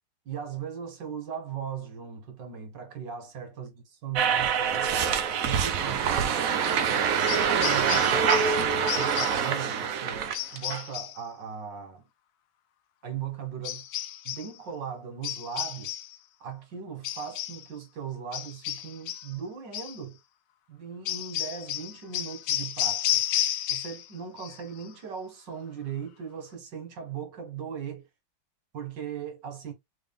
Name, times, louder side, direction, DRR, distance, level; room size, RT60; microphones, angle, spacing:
voice 1, 0.3-5.2 5.4-12.0 13.0-13.8 14.3-16.0 16.4-20.2 20.7-23.2 23.7-28.1 28.7-29.7, right 7 dB, 60° right, 1.9 m, -38 dB
sound 1, 4.1-10.8, right 7 dB, 80° right, 0.7 m, -25 dB
sound 2, 7.3-8.6 8.9-9.5 10.3-11.2 13.6-14.5 15.2-16.2 17.0-17.7 18.3-19.3 19.7-20.0 21.1-24.1 24.4-24.9, left 12 dB, 75° left, 1.3 m, -32 dB
3.5 x 3.3 x 3.6 m
omnidirectional pair, 2.3 m